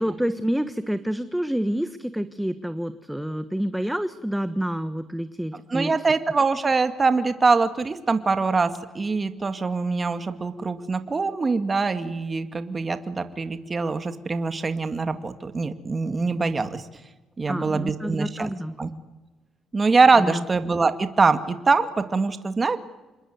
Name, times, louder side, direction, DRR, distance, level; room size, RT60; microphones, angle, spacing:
voice 1, 0.0-6.0 17.5-18.7 20.2-20.4, equal, 5° right, 11 dB, 1.4 m, -28 dB
voice 2, 5.7-16.8 17.4-18.5 18.8-18.9 19.7-22.8, right 4 dB, 30° right, 9 dB, 2.1 m, -23 dB
27.5 x 21.0 x 9.6 m, 1.2 s
cardioid pair, 90°, 0 cm